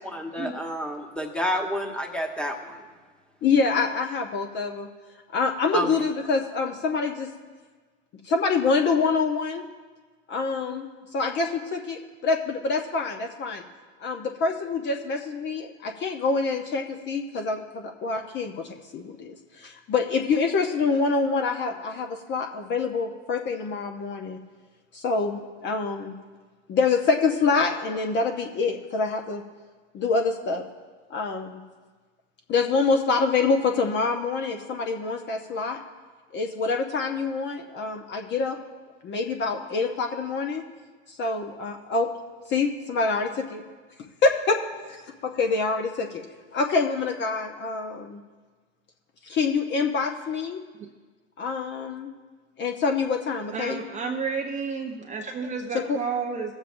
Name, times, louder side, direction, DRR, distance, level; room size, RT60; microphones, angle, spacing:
voice 1, 0.1-2.8 5.7-5.9, equal, 5° left, 2 dB, 1.2 m, -29 dB
voice 2, 3.4-4.9 5.3-7.3 8.2-9.6 10.3-10.9 11.1-13.6 14.0-24.4 24.9-26.1 26.7-29.4 29.9-30.6 31.1-31.6 32.5-35.8 36.3-38.6 39.0-40.6 41.1-42.1 42.5-43.6 44.2-46.2 46.5-48.2 49.2-50.6 51.4-52.1 52.6-53.8 55.9-56.0, left 4 dB, 30° left, 4 dB, 0.7 m, -26 dB
voice 3, 53.5-56.5, right 5 dB, 20° right, 2 dB, 0.6 m, -31 dB
17.5 x 7.2 x 2.6 m, 1.4 s
hypercardioid pair, 100°, 37 cm